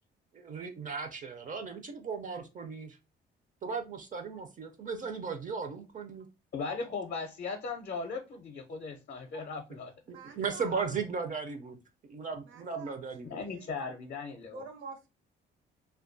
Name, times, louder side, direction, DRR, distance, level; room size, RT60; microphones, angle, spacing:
voice 1, 0.3-3.0 3.6-6.3 10.1-11.8 12.0-13.4, right 5 dB, 40° right, 0.4 m, -36 dB
voice 2, 6.5-9.9 13.2-14.6, left 4 dB, 50° left, 0.5 m, -38 dB
voice 3, 10.1-11.0 12.4-13.7 14.5-15.1, right 5 dB, 75° right, 0.7 m, -48 dB
2.2 x 2.2 x 2.5 m
cardioid pair, 90°, 20 cm